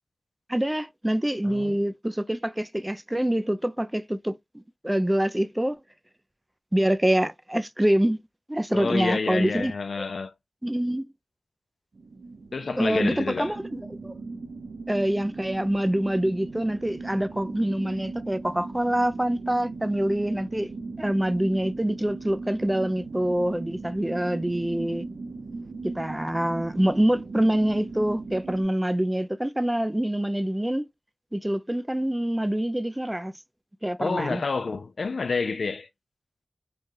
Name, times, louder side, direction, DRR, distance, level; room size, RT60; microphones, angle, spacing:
voice 1, 0.5-4.4 4.8-5.8 6.7-8.2 8.5-9.7 10.0-10.1 10.6-11.0 12.8-14.1 14.9-20.7 21.0-25.0 25.8-30.9 31.3-33.3 33.8-34.4, right 1 dB, 15° right, 0.4 m, -25 dB
voice 2, 1.4-1.8 8.7-10.3 12.5-13.6 34.0-35.9, left 4 dB, 75° left, 0.4 m, -28 dB
sound 1, 12.0-28.6, right 3 dB, 80° right, 0.6 m, -38 dB
3.1 x 2.3 x 2.6 m
cardioid pair, 55°, 0 cm